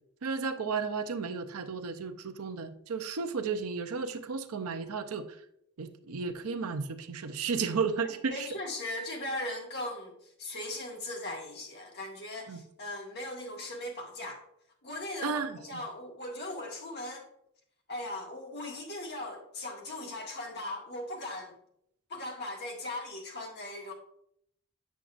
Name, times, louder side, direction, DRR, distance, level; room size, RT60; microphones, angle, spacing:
voice 1, 0.2-5.2 5.8-8.5 12.5-12.6 15.2-15.6, right 5 dB, 75° right, 8 dB, 0.6 m, -33 dB
voice 2, 8.0-14.4 14.8-17.3 17.9-21.6 22.1-23.9, left 1 dB, 50° left, 0 dB, 1.6 m, -39 dB
8.2 x 6.1 x 2.5 m, 0.73 s
head